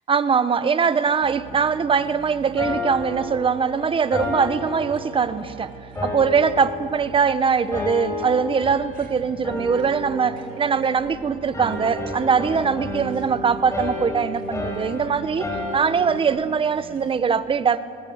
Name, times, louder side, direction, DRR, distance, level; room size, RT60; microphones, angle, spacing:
voice 1, 0.1-5.7 6.0-17.8, right 6 dB, 30° right, 13 dB, 1.0 m, -22 dB
sound 1, 0.8-17.2, right 4 dB, 55° right, 2.6 m, -44 dB
sound 2, 2.6-5.5 6.0-7.3 7.7-9.1 9.4-11.2 11.5-16.3, left 2 dB, 15° left, 6.0 m, -31 dB
20.5 x 20.5 x 8.0 m, 2.3 s
cardioid pair, 110°, 17 cm